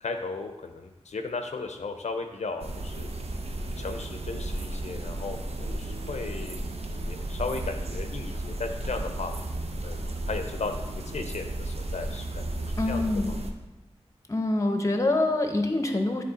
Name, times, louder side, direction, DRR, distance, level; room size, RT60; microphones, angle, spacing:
voice 1, 0.0-3.1 3.8-9.3 9.8-13.4, left 3 dB, 90° left, 6 dB, 0.5 m, -36 dB
sound 1, 2.6-13.5, right 1 dB, 65° right, 0.6 m, -34 dB
voice 2, 12.8-13.4 14.3-16.2, left 2 dB, 25° left, 4 dB, 0.8 m, -25 dB
9.3 x 3.2 x 3.9 m, 1.0 s
wide cardioid pair, 70°, 11 cm